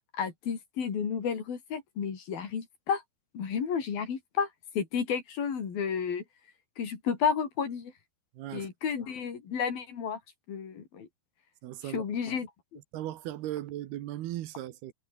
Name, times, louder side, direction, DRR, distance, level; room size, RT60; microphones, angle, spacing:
voice 1, 0.1-3.0 3.3-4.5 4.8-6.2 6.8-7.9 8.5-10.2 10.5-11.1 11.8-12.5, left 7 dB, 60° left, 5.3 m, -31 dB
voice 2, 8.4-8.7 11.6-12.0 12.9-14.9, right 13 dB, 75° right, 3.1 m, -37 dB
omnidirectional pair, 4.7 m